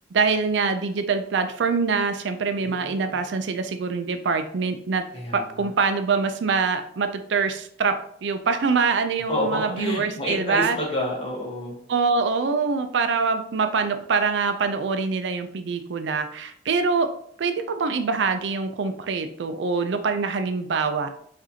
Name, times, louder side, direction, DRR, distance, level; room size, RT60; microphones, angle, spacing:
voice 1, 0.1-5.0 5.3-7.9 8.2-10.8 11.9-17.1 17.4-21.1, right 4 dB, 70° right, 8 dB, 0.4 m, -24 dB
voice 2, 2.6-3.2 5.1-5.7 9.3-11.8, left 1 dB, 30° left, -3 dB, 1.2 m, -29 dB
4.9 x 2.6 x 2.8 m, 0.64 s
head